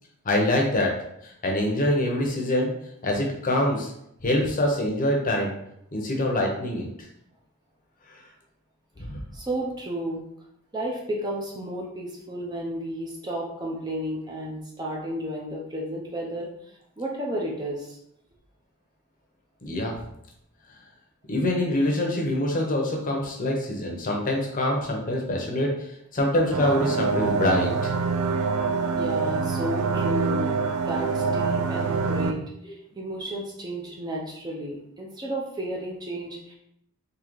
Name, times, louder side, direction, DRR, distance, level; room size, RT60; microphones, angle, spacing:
voice 1, 0.2-1.0 1.2-2.7 3.0-3.9 4.2-5.5 5.9-6.9 9.0-9.2 19.6-20.0 21.3-25.7 26.1-27.9 31.0-31.1, left 1 dB, 40° left, 0 dB, 0.7 m, -25 dB
voice 2, 9.3-10.2 10.7-18.0 28.9-36.5, right 1 dB, 20° right, -2 dB, 0.5 m, -32 dB
sound 1, 26.5-32.3, right 5 dB, 85° right, 0.4 m, -25 dB
3.8 x 2.8 x 3.0 m, 0.76 s
head